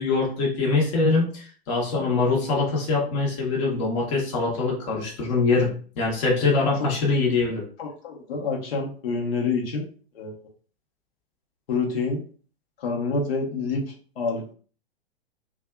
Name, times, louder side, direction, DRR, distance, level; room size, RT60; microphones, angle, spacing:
voice 1, 0.0-5.7 6.0-7.6, left 3 dB, 40° left, -3 dB, 1.0 m, -23 dB
voice 2, 6.6-6.9 7.8-9.9 10.1-10.3 11.7-12.2 12.8-13.8 14.2-14.5, left 4 dB, 65° left, 0 dB, 1.0 m, -27 dB
2.6 x 2.3 x 2.3 m, 0.41 s
hypercardioid pair, 110°, 31 cm